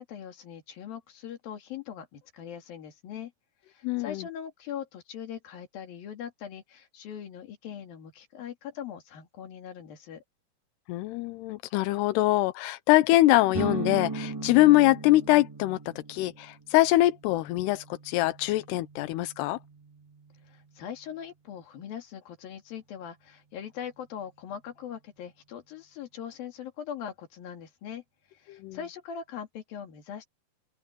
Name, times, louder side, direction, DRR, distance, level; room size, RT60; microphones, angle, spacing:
voice 1, 0.0-3.3 3.7-10.2 20.5-28.0 28.3-30.3, left 8 dB, 65° left, 4.2 m, -41 dB
voice 2, 3.8-4.2 10.9-15.8 16.1-19.6 28.6-28.8, left 17 dB, 90° left, 2.8 m, -23 dB
sound 1, 13.5-21.1, right 3 dB, 20° right, 0.6 m, -39 dB
open air
omnidirectional pair, 4.7 m